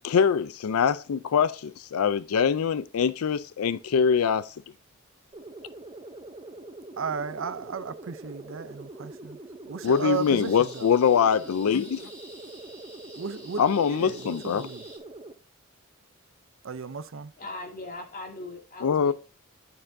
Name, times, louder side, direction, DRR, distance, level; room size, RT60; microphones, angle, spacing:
voice 1, 0.0-4.5 9.8-12.1 13.6-14.7 18.8-19.1, left 7 dB, 85° left, 0.4 m, -23 dB
sound 1, 5.3-15.3, right 2 dB, 25° right, 0.7 m, -44 dB
voice 2, 7.0-9.4 9.7-10.9 13.2-13.6 13.9-14.8 16.6-17.3, right 6 dB, 60° right, 0.5 m, -34 dB
sound 2, 9.8-15.0, right 1 dB, 5° left, 3.5 m, -49 dB
voice 3, 17.4-19.1, left 2 dB, 40° left, 1.9 m, -39 dB
10.0 x 6.6 x 2.6 m
head